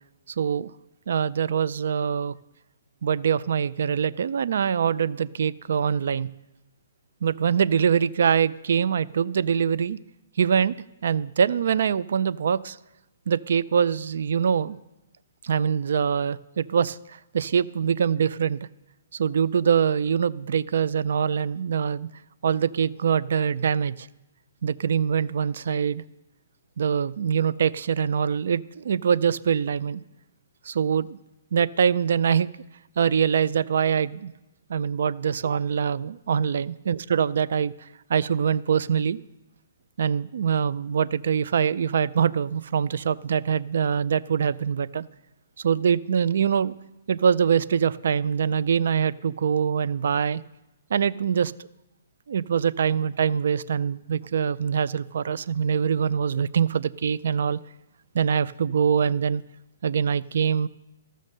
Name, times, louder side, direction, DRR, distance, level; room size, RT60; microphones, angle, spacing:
voice 1, 0.4-0.7 1.1-2.3 3.0-6.3 7.2-10.0 10.4-10.7 11.0-12.8 13.3-14.8 15.4-18.6 19.1-22.1 22.4-24.1 24.6-26.0 26.8-30.0 30.6-31.2 31.5-32.5 33.0-34.3 34.7-39.2 40.0-45.1 45.6-46.7 47.1-50.4 50.9-51.5 52.3-57.6 58.1-59.4 59.8-60.7, right 7 dB, 65° right, 18 dB, 0.4 m, -24 dB
14.5 x 6.3 x 6.5 m, 0.96 s
hypercardioid pair, 165°, 0 cm